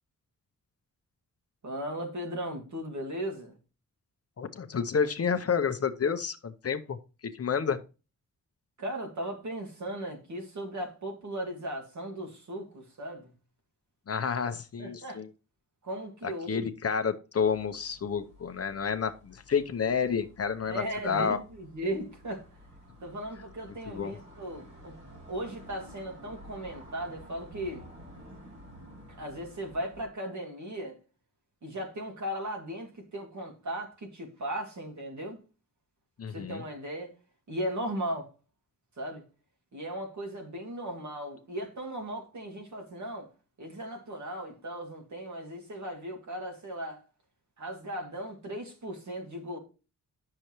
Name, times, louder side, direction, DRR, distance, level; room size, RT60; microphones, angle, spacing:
voice 1, 1.6-3.5 8.8-13.3 14.8-15.2 15.8-16.7 20.6-22.5 23.0-25.0 25.3-27.9 29.2-31.0 31.6-35.4 36.3-37.1 37.5-38.3 39.0-39.2 39.7-43.3 43.6-47.0 47.6-49.6, right 1 dB, 60° right, 2.3 m, -37 dB
voice 2, 4.4-7.0 7.3-7.8 14.1-15.3 16.2-21.4 23.9-24.2 36.2-36.6, left 6 dB, 45° left, 0.7 m, -30 dB
sound 1, 17.5-30.0, equal, 35° right, 3.2 m, -52 dB
9.7 x 6.6 x 3.0 m
wide cardioid pair, 175°, 33 cm